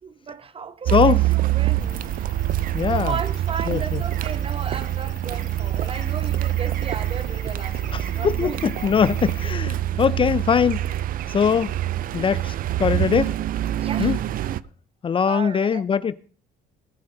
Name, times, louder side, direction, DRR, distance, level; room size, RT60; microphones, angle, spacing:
voice 1, 0.0-2.4 2.9-8.9 9.9-10.0 13.8-14.2 15.2-15.8, right 6 dB, 35° right, 1.1 m, -35 dB
voice 2, 0.9-1.2 2.7-3.2 3.7-4.0 7.9-10.9 11.3-11.8 12.1-13.3 14.0-14.2 15.0-16.2, left 7 dB, 30° left, 0.5 m, -21 dB
Car, 0.9-14.6, right 14 dB, 55° right, 0.5 m, -25 dB
sound 1, 1.8-9.5, left 5 dB, 50° left, 3.3 m, -43 dB
19.0 x 7.5 x 3.9 m
cardioid pair, 110°, 17 cm